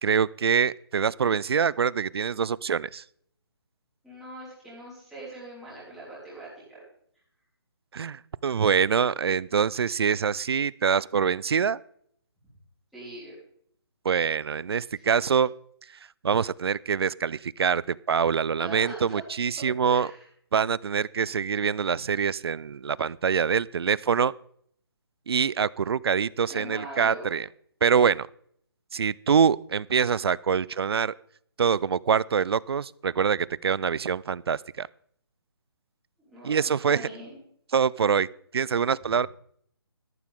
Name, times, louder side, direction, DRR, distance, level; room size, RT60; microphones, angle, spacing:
voice 1, 0.0-3.0 7.9-11.8 14.0-15.5 16.2-20.1 20.5-24.3 25.3-27.5 27.8-28.3 28.9-31.1 31.6-34.9 36.4-37.1 37.7-38.3 38.5-39.3, right 6 dB, 70° right, 23 dB, 0.4 m, -25 dB
voice 2, 4.0-6.8 12.9-13.3 15.0-15.1 18.6-19.2 19.6-20.3 26.5-27.3 36.2-37.4, right 2 dB, ahead, -10 dB, 5.2 m, -41 dB
14.0 x 11.5 x 3.7 m, 0.65 s
hypercardioid pair, 160°, 14 cm